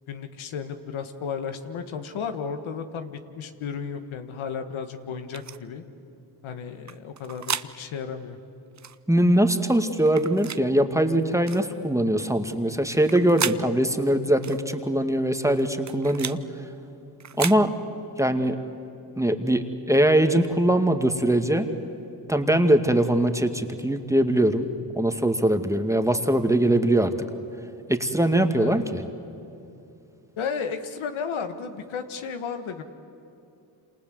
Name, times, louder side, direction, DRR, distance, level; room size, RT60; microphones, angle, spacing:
voice 1, 0.1-5.8 6.4-8.4 28.5-28.8 30.4-32.8, left 6 dB, 75° left, 8 dB, 1.7 m, -33 dB
sound 1, 5.3-5.6 6.9-7.7 8.8-9.0 10.1-10.6 11.5-11.7 12.9-13.6 14.4-14.6 15.6-16.4 17.2-17.6, right 7 dB, 35° right, 0.8 m, -33 dB
voice 2, 9.1-16.4 17.4-17.7 18.2-18.6 19.2-21.7 22.3-24.7 24.9-27.1 27.9-28.8, right 1 dB, 5° right, 6 dB, 2.1 m, -22 dB
28.0 x 27.5 x 7.8 m, 2.8 s
supercardioid pair, 60°, 48 cm